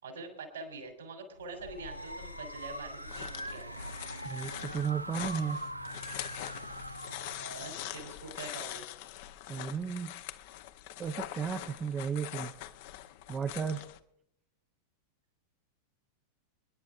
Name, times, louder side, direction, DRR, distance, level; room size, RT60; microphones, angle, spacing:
voice 1, 0.0-3.7 7.5-8.8, right 3 dB, 70° right, 4 dB, 3.8 m, -44 dB
sound 1, 1.4-8.5, right 1 dB, 85° right, 0.4 m, -43 dB
sound 2, 1.6-14.0, left 14 dB, 50° left, 0.7 m, -44 dB
sound 3, 1.8-8.4, left 3 dB, 90° left, 1.0 m, -53 dB
voice 2, 4.2-5.6 9.5-10.1 11.0-12.5 13.3-13.9, right 6 dB, 25° right, 7 dB, 0.6 m, -34 dB
28.0 x 10.5 x 2.5 m, 0.74 s
figure-of-eight pair, 90°, 0 cm